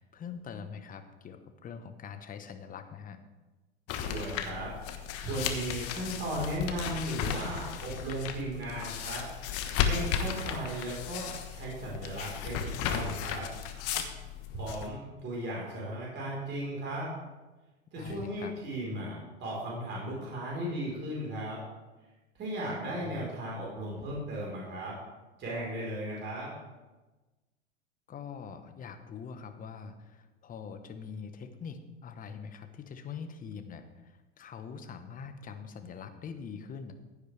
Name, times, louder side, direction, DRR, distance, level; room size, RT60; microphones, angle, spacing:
voice 1, 0.0-3.2 18.0-18.5 23.0-23.4 28.1-36.9, left 6 dB, 25° left, 8 dB, 1.2 m, -43 dB
sound 1, 3.9-14.9, left 8 dB, 40° left, 1.4 m, -35 dB
voice 2, 4.0-4.8 5.2-9.2 9.8-13.5 14.5-17.1 17.9-21.6 22.4-24.9 25.4-26.5, right 1 dB, 30° right, -4 dB, 4.3 m, -36 dB
15.0 x 10.0 x 3.4 m, 1.2 s
hypercardioid pair, 100°, 35 cm